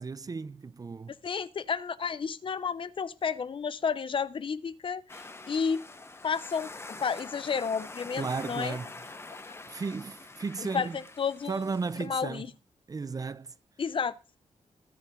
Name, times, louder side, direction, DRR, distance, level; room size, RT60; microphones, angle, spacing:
voice 1, 0.0-1.1 8.2-8.9 9.7-11.0 11.5-12.4 12.9-13.5, right 4 dB, 30° right, 0.6 m, -34 dB
voice 2, 1.2-5.0 5.5-5.8 6.2-8.8 10.6-11.6 12.0-12.5 13.8-14.1, left 6 dB, 45° left, 0.8 m, -31 dB
sound 1, 5.1-12.1, left 2 dB, 20° left, 1.2 m, -45 dB
20.5 x 8.2 x 3.8 m
wide cardioid pair, 120°, 12 cm